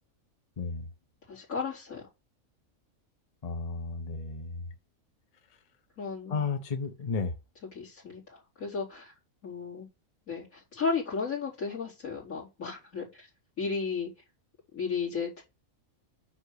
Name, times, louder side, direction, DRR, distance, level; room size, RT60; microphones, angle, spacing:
voice 1, 0.6-0.9 3.4-4.6 6.3-7.3, left 4 dB, 30° left, 0.9 m, -33 dB
voice 2, 1.3-2.0 6.0-6.4 7.7-9.1 9.4-9.9 10.3-13.3 13.6-14.1 14.7-15.4, left 5 dB, 80° left, 4.5 m, -34 dB
9.8 x 3.7 x 6.8 m
omnidirectional pair, 1.5 m